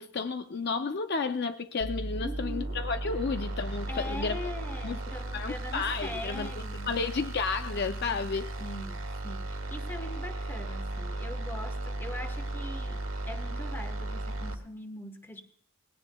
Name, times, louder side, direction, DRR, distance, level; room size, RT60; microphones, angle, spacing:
voice 1, 0.0-4.4 4.8-5.0 5.3-6.5 6.9-8.5, left 4 dB, 50° left, 0.5 m, -32 dB
sound 1, 1.8-14.5, right 2 dB, 70° right, 1.4 m, -36 dB
voice 2, 2.2-2.8 3.9-7.0 8.6-15.4, left 1 dB, 10° left, 1.1 m, -42 dB
19.0 x 16.5 x 2.3 m
head